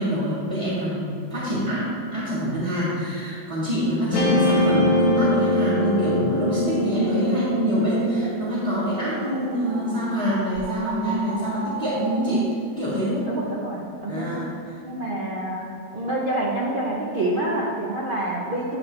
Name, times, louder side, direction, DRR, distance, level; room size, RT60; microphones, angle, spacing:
voice 1, 0.0-13.3 14.1-14.5, equal, 20° right, -11 dB, 1.5 m, -25 dB
Guitar, 4.1-10.6, left 1 dB, 60° left, 1.3 m, -24 dB
sound 1, 6.7-12.5, right 4 dB, 60° right, 1.0 m, -37 dB
voice 2, 13.3-14.4 14.8-18.8, right 1 dB, 40° right, -6 dB, 0.8 m, -27 dB
9.6 x 5.7 x 3.3 m, 2.4 s
omnidirectional pair, 1.8 m